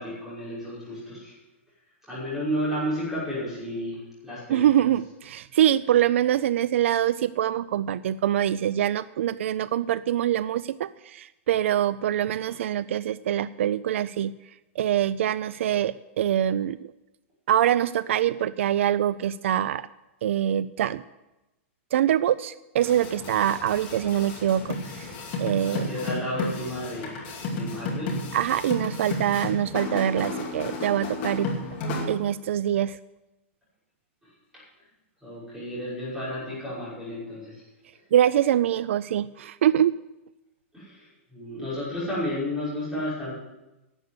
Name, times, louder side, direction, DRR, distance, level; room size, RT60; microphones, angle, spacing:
voice 1, 0.0-1.3 2.1-4.9 25.7-27.2 27.5-28.1 34.5-34.6 35.2-37.6 40.7-43.3, equal, 5° right, -10 dB, 5.9 m, -32 dB
voice 2, 4.5-14.3 14.8-16.8 17.5-19.9 20.2-21.0 21.9-25.1 25.4-25.9 27.6-27.8 28.3-31.5 32.1-33.0 38.1-40.0, right 11 dB, 70° right, 17 dB, 0.4 m, -24 dB
sound 1, 22.8-32.0, left 2 dB, 30° left, 2.4 m, -33 dB
11.5 x 8.1 x 7.8 m, 0.99 s
supercardioid pair, 170°, 7 cm